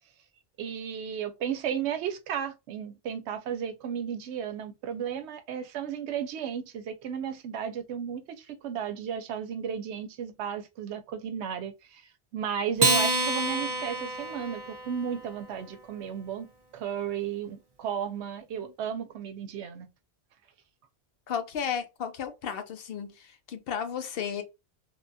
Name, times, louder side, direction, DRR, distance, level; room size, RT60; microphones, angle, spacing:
voice 1, 0.6-12.0 12.3-19.9, right 8 dB, 85° right, 0.9 m, -34 dB
Acoustic guitar, 12.8-15.4, right 2 dB, 35° right, 0.4 m, -28 dB
voice 2, 21.3-23.1 23.5-24.4, left 8 dB, 65° left, 0.8 m, -33 dB
3.2 x 2.2 x 2.6 m
omnidirectional pair, 1.1 m